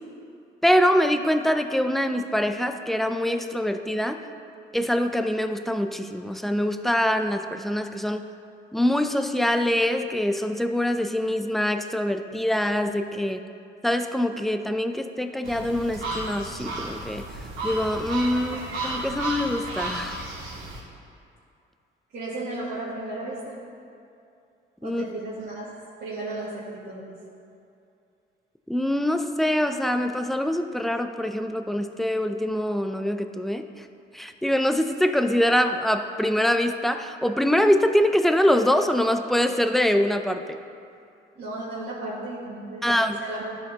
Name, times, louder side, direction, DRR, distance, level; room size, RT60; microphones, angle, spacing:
voice 1, 0.6-4.2 4.7-8.2 8.7-13.4 13.8-20.2 24.8-25.1 28.7-33.9 34.1-40.6 42.8-43.2, left 1 dB, ahead, 7 dB, 0.4 m, -24 dB
sound 1, 15.4-20.8, right 2 dB, 85° right, 1.8 m, -33 dB
voice 2, 22.1-23.6 24.8-25.7 26.0-27.2 41.4-43.4, right 2 dB, 60° right, -10 dB, 1.9 m, -34 dB
13.0 x 4.4 x 3.9 m, 2.5 s
cardioid pair, 90°, 20 cm